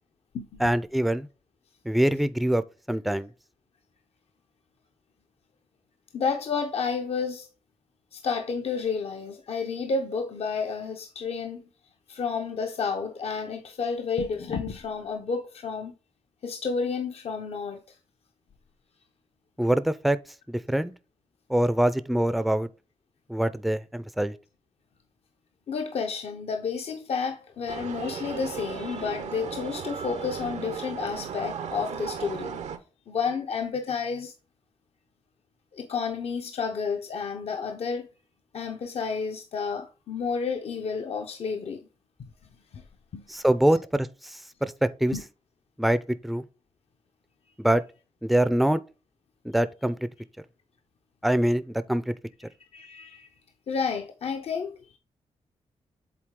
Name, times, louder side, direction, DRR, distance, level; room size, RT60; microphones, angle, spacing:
voice 1, 0.6-1.3 1.9-2.6 2.9-3.3 19.6-20.2 20.5-20.9 21.5-22.7 23.3-24.3 43.3-44.1 44.6-45.1 45.8-46.4 47.6-47.8 48.2-48.8 49.5-50.0 51.2-52.1, right 1 dB, ahead, 0.4 m, -24 dB
voice 2, 6.1-7.5 8.1-11.7 12.1-15.9 16.4-18.0 25.7-32.6 33.1-34.3 35.7-38.1 38.5-41.9 42.2-42.3 42.7-42.8 43.1-43.4 45.1-45.2 52.7-53.3 53.7-55.0, left 5 dB, 65° left, 0.7 m, -31 dB
sound 1, 27.7-32.8, right 7 dB, 85° right, 0.8 m, -36 dB
7.6 x 3.9 x 3.6 m
cardioid pair, 95°, 11 cm